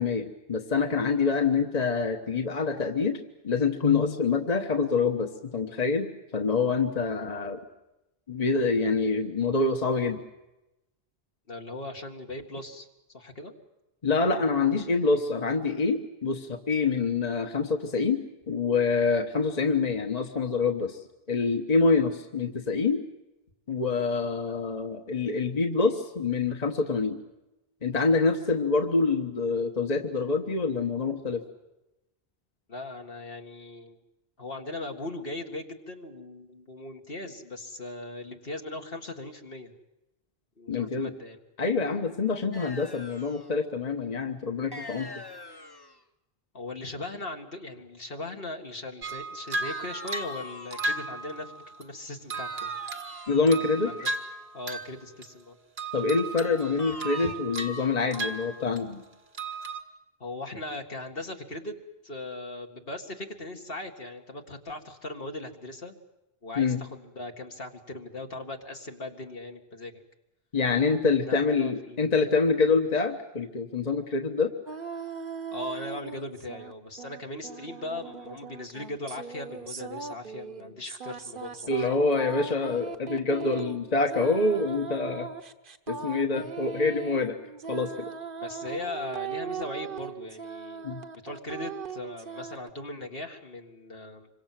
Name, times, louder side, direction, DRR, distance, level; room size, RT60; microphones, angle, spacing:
voice 1, 0.0-3.2 3.4-7.6 8.3-10.2 14.0-21.0 21.3-23.0 23.7-27.2 27.8-31.4 40.7-41.1 41.6-45.1 53.3-54.1 55.9-59.0 66.6-66.8 70.5-74.5 81.7-85.3 85.9-87.4 87.7-88.1 90.8-91.0, left 4 dB, 40° left, 4 dB, 1.4 m, -26 dB
voice 2, 11.5-12.9 13.1-13.5 32.7-34.0 34.4-39.7 40.6-41.4 46.5-51.5 51.8-52.7 53.8-54.1 54.5-55.6 57.2-57.3 60.2-61.8 62.0-66.0 66.4-70.0 71.2-72.0 75.5-81.9 88.4-90.9 91.2-94.3, left 2 dB, 65° left, 3 dB, 2.3 m, -39 dB
sound 1, 42.5-43.5 44.7-46.0 49.6-50.9 52.3-53.6 56.8-57.4, left 2 dB, 25° left, 1.1 m, -43 dB
sound 2, 49.0-51.8 52.3-55.0 55.2-55.5 55.8-59.0 59.3-59.8, right 3 dB, 80° right, 2.0 m, -35 dB
sound 3, 74.7-76.7 77.0-92.7, right 6 dB, 55° right, 1.3 m, -39 dB
26.5 x 24.0 x 7.6 m, 0.96 s
omnidirectional pair, 1.0 m